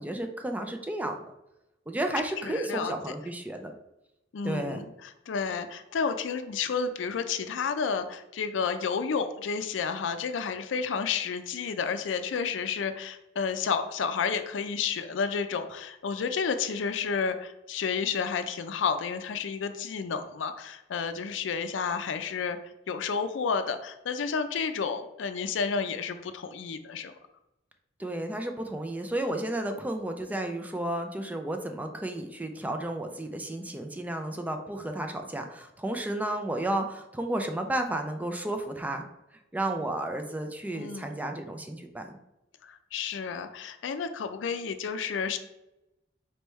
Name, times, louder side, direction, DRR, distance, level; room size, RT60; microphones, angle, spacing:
voice 1, 0.0-1.3 1.9-3.7 4.4-4.8 28.0-39.0 39.5-42.2, right 1 dB, 10° right, 5 dB, 0.4 m, -32 dB
voice 2, 2.4-2.9 4.3-22.6 22.9-27.1 40.7-41.1 42.6-45.4, left 5 dB, 85° left, 9 dB, 0.4 m, -31 dB
4.3 x 3.4 x 3.1 m, 0.90 s
head